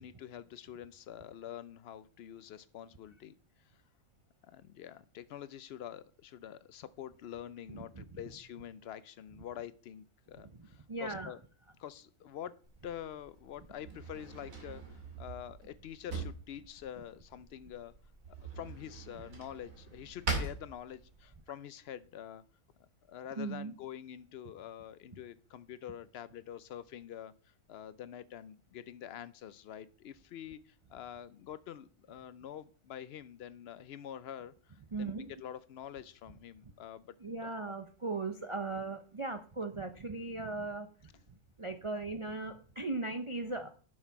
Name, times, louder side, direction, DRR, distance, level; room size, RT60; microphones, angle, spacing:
voice 1, 0.0-3.3 4.5-11.4 11.8-12.6 12.8-17.9 18.3-22.4 22.8-37.2 37.4-37.5, left 10 dB, 80° left, 16 dB, 0.5 m, -46 dB
voice 2, 7.7-8.0 10.4-11.3 23.4-23.7 34.9-35.3 37.2-40.9 41.6-43.7, right 3 dB, 40° right, 6 dB, 0.4 m, -38 dB
Drawer open or close, 12.6-21.4, right 4 dB, 60° right, 2.9 m, -43 dB
11.0 x 6.5 x 4.6 m, 0.43 s
omnidirectional pair, 1.6 m